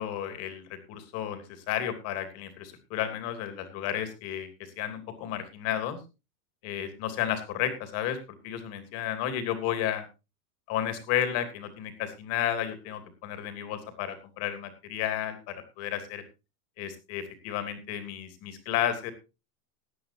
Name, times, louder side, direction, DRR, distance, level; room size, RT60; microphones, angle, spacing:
voice 1, 0.0-4.5 4.8-6.0 6.6-8.2 8.4-10.1 10.7-16.2 16.8-19.1, left 10 dB, 30° left, 10 dB, 2.8 m, -32 dB
18.0 x 11.5 x 2.8 m, 0.28 s
supercardioid pair, 170°, 46 cm